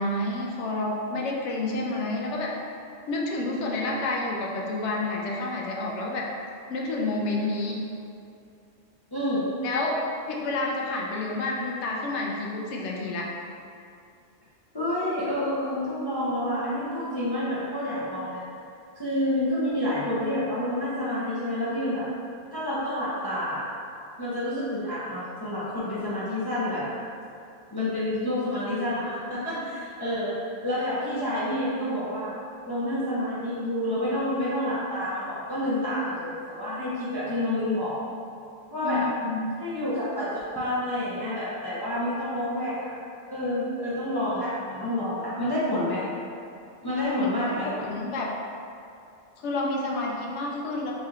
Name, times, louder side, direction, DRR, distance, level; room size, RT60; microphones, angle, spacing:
voice 1, 0.0-2.5 3.1-6.3 6.7-7.8 9.6-10.0 10.3-13.3 38.8-39.4 47.2-47.3 47.8-48.3 49.4-50.9, left 2 dB, 80° left, -2 dB, 0.9 m, -29 dB
voice 2, 9.1-9.5 14.7-18.4 19.0-22.1 22.5-23.6 24.2-26.9 27.7-30.3 30.6-32.3 32.7-38.0 38.7-39.1 39.6-42.9 43.3-46.0 46.8-47.7, left 1 dB, 25° left, -10 dB, 0.5 m, -28 dB
3.2 x 2.9 x 3.6 m, 2.5 s
omnidirectional pair, 1.2 m